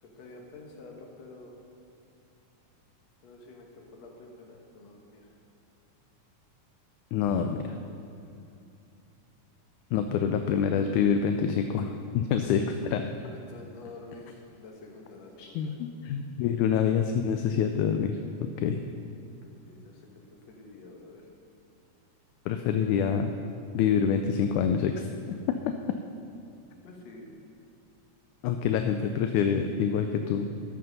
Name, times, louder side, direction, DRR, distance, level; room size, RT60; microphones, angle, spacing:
voice 1, 0.0-1.5 3.2-5.3 8.1-8.3 13.2-15.7 19.7-21.3 26.8-27.3, left 2 dB, 60° left, 0 dB, 2.4 m, -48 dB
voice 2, 7.1-7.8 9.9-13.0 15.4-18.2 18.6-18.8 22.5-23.3 23.7-25.1 28.4-30.5, left 7 dB, 80° left, 6 dB, 2.0 m, -26 dB
13.5 x 7.8 x 5.3 m, 2.6 s
omnidirectional pair, 3.6 m